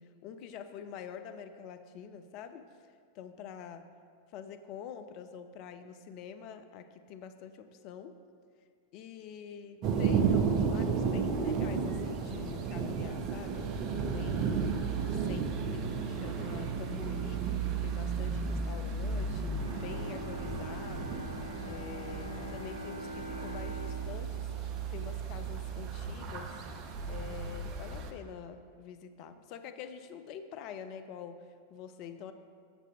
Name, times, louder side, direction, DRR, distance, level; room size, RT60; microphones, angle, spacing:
voice 1, 0.0-3.9 4.3-8.2 8.9-17.5 17.8-21.3 21.7-26.6 27.0-32.3, left 7 dB, 40° left, 9 dB, 0.4 m, -46 dB
sound 1, 9.8-28.1, right 5 dB, 40° right, 0.6 m, -33 dB
Bowed string instrument, 19.5-25.7 26.1-26.2, left 1 dB, 75° left, 0.7 m, -44 dB
7.9 x 6.7 x 3.0 m, 2.1 s
figure-of-eight pair, 90°, 0 cm